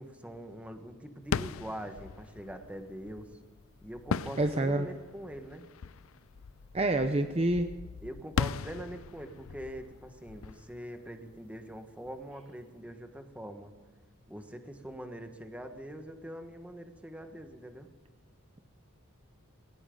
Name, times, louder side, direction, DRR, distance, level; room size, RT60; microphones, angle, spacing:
voice 1, 0.0-3.3 3.8-5.7 8.0-13.7 14.3-17.9, equal, 5° right, 6 dB, 1.4 m, -43 dB
sound 1, 1.2-11.8, left 6 dB, 70° left, 0.5 m, -39 dB
voice 2, 4.4-4.9 6.7-7.7, right 2 dB, 30° right, 7 dB, 0.7 m, -27 dB
19.0 x 17.5 x 3.9 m, 1.3 s
head